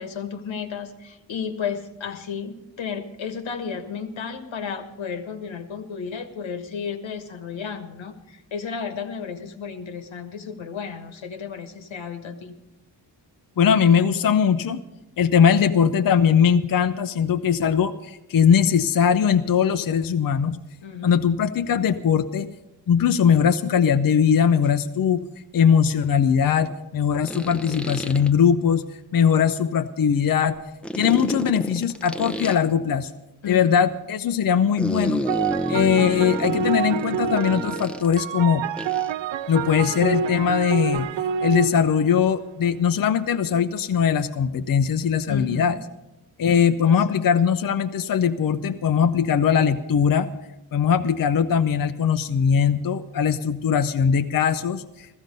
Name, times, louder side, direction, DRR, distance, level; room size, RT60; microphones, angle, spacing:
voice 1, 0.0-12.5 20.8-21.2 33.4-33.8 45.3-45.8 46.8-47.2, left 6 dB, 85° left, 7 dB, 1.5 m, -33 dB
voice 2, 13.6-14.8 15.2-20.6 21.0-22.5 22.9-25.2 25.5-28.8 29.1-30.6 30.9-33.1 33.5-35.2 35.7-38.6 39.5-41.1 41.4-45.8 46.4-50.3 50.7-55.2, left 7 dB, 50° left, 9 dB, 0.6 m, -20 dB
sound 1, 24.6-24.7 27.2-28.3 30.8-32.6 34.8-38.2 38.8-39.1, equal, ahead, 0.7 m, -30 dB
sound 2, 35.3-42.7, right 7 dB, 75° right, 0.6 m, -28 dB
15.0 x 14.5 x 5.3 m, 0.97 s
wide cardioid pair, 105°, 46 cm